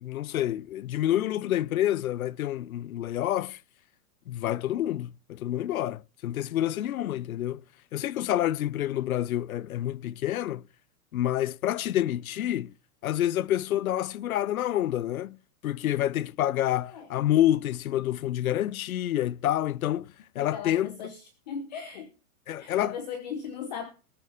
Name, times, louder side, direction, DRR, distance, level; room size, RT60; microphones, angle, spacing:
voice 1, 0.0-3.6 4.3-7.6 7.9-10.6 11.1-12.7 13.0-15.4 15.6-21.1 22.5-22.9, left 12 dB, 70° left, 0.7 m, -28 dB
voice 2, 20.4-21.2 21.5-22.1 22.6-23.9, left 6 dB, 30° left, 1.1 m, -37 dB
19.5 x 6.9 x 5.0 m
hypercardioid pair, 175°, 45 cm